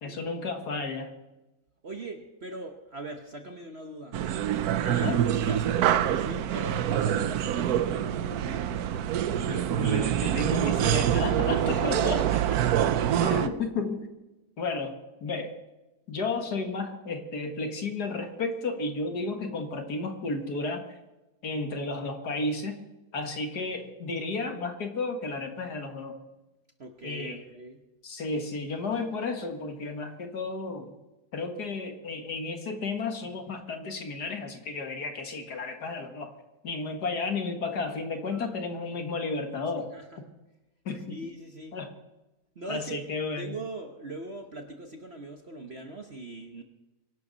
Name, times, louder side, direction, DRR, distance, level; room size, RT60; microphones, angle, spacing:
voice 1, 0.0-1.1 4.8-5.2 9.5-12.2 13.2-14.1 14.6-15.6 16.1-20.8 21.4-22.8 23.1-26.2 27.0-27.4 28.0-30.9 31.3-36.3 36.6-39.9 40.9-41.2 41.7-41.9 42.7-43.5, left 3 dB, 55° left, 5 dB, 2.1 m, -33 dB
voice 2, 1.8-4.2 5.4-8.9 11.7-12.6 13.4-13.5 26.8-27.8 38.3-38.6 39.9-40.2 41.1-41.8 42.5-43.0 43.4-46.6, right 2 dB, 40° right, 4 dB, 1.1 m, -41 dB
sound 1, 4.1-13.5, right 10 dB, 65° right, 1.0 m, -26 dB
23.5 x 12.0 x 4.0 m, 1.0 s
omnidirectional pair, 2.1 m